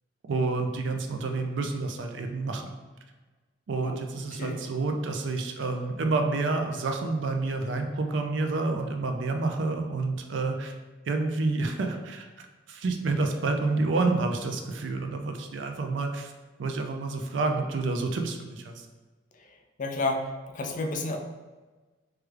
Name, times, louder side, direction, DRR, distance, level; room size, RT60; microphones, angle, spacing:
voice 1, 0.2-2.7 3.7-10.7 11.1-16.3 16.6-18.9, right 3 dB, 70° right, 5 dB, 0.4 m, -29 dB
voice 2, 19.8-21.2, left 2 dB, 40° left, 3 dB, 0.4 m, -30 dB
3.2 x 2.3 x 3.2 m, 1.3 s
head